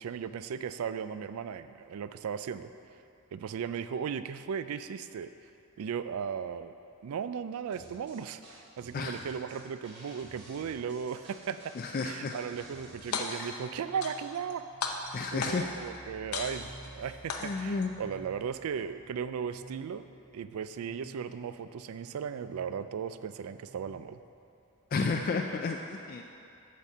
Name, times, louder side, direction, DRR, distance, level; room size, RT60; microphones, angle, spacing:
voice 1, 0.0-2.7 3.3-5.3 5.8-6.7 7.0-11.8 12.0-14.6 15.3-20.1 20.3-24.2 25.0-25.3, right 7 dB, 75° right, 12 dB, 0.3 m, -36 dB
sound 1, 7.7-13.2, right 1 dB, 50° right, 1.7 m, -53 dB
voice 2, 11.8-12.3 13.1-13.5 15.1-15.7 17.4-17.9 24.9-26.2, left 4 dB, 40° left, 3 dB, 0.3 m, -32 dB
sound 2, 13.0-13.6 14.0-14.5 14.8-15.8 16.3-16.9 17.3-17.9, left 5 dB, 80° left, 0.7 m, -35 dB
sound 3, 13.7-23.9, right 2 dB, 20° right, 1.8 m, -53 dB
8.4 x 4.3 x 7.2 m, 2.6 s
head